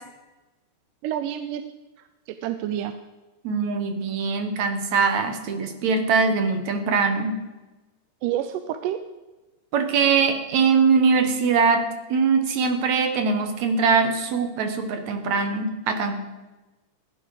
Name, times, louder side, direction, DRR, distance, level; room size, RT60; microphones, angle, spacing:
voice 1, 1.0-1.7 2.0-3.0 8.2-9.0, right 11 dB, 85° right, 10 dB, 2.2 m, -29 dB
voice 2, 3.4-7.3 9.7-16.2, right 5 dB, 65° right, 6 dB, 2.4 m, -22 dB
15.5 x 11.0 x 4.9 m, 1.1 s
omnidirectional pair, 3.8 m